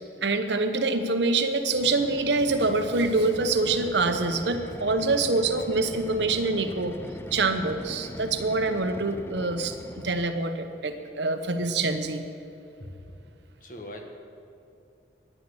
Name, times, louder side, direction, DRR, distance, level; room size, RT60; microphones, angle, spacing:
voice 1, 0.2-7.0 7.3-9.7 10.0-12.2, right 3 dB, 70° right, 7 dB, 1.0 m, -25 dB
sound 1, 1.7-10.5, left 1 dB, 15° left, 0.5 m, -41 dB
voice 2, 12.8-13.2 13.6-14.0, left 1 dB, 50° left, 3 dB, 1.6 m, -41 dB
10.5 x 10.0 x 8.5 m, 2.6 s
head